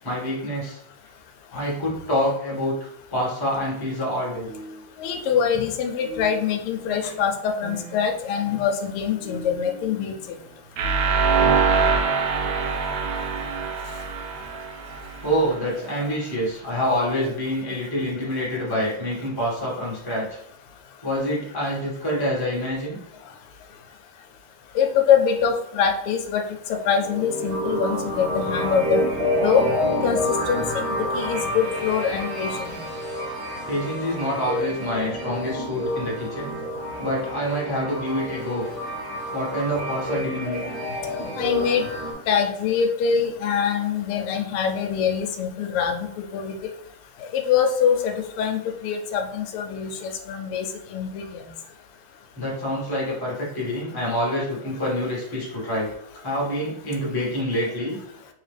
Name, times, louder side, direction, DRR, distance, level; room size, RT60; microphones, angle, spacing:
voice 1, 0.0-0.8 1.5-4.5 15.2-20.4 21.0-23.0 33.6-36.5 37.0-38.6 39.3-40.6 52.3-55.9 56.2-58.0, equal, 15° left, -5 dB, 1.2 m, -26 dB
sound 1, 4.4-5.7 6.0-11.3, right 2 dB, 90° right, 0.7 m, -43 dB
voice 2, 5.0-10.1 24.7-29.1 29.4-29.7 30.0-30.6 31.0-32.8 41.4-41.9 42.3-46.7 47.3-51.4, left 7 dB, 90° left, 4 dB, 1.5 m, -24 dB
sound 2, 10.8-15.6, right 5 dB, 75° right, 1.1 m, -23 dB
sound 3, 26.8-42.1, equal, 45° right, 1.2 m, -29 dB
3.8 x 2.8 x 3.2 m, 0.74 s
omnidirectional pair, 2.4 m